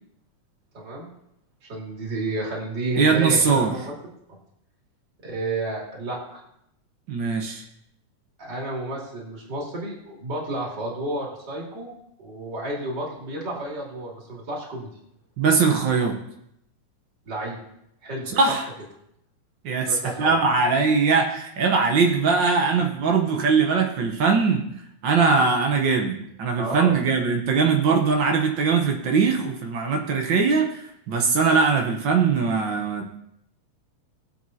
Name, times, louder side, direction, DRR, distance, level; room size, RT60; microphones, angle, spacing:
voice 1, 0.7-1.1 1.7-3.9 5.2-6.4 8.4-11.9 12.2-14.9 17.2-17.6 18.0-18.6 19.9-20.4 26.6-27.0, right 2 dB, 35° right, -3 dB, 3.1 m, -31 dB
voice 2, 3.0-3.7 7.1-7.6 15.4-16.1 18.3-18.6 19.6-24.6 25.0-33.2, right 5 dB, 85° right, 2 dB, 1.0 m, -21 dB
21.5 x 7.6 x 2.8 m, 0.76 s
omnidirectional pair, 3.5 m